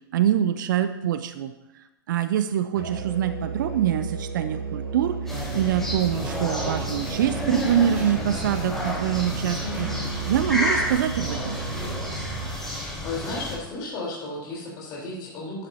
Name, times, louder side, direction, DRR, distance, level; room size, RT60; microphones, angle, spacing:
voice 1, 0.1-9.9 10.3-11.6, right 10 dB, 60° right, 11 dB, 0.7 m, -25 dB
Musical instrument, 2.7-12.6, right 6 dB, 85° right, 1.4 m, -34 dB
sound 1, 5.3-13.6, left 1 dB, 5° left, 4.4 m, -30 dB
sound 2, 6.2-12.2, right 2 dB, 15° right, 2.5 m, -43 dB
voice 2, 13.0-15.7, left 2 dB, 35° left, -4 dB, 4.2 m, -33 dB
12.0 x 11.0 x 2.9 m, 0.95 s
figure-of-eight pair, 105°, 12 cm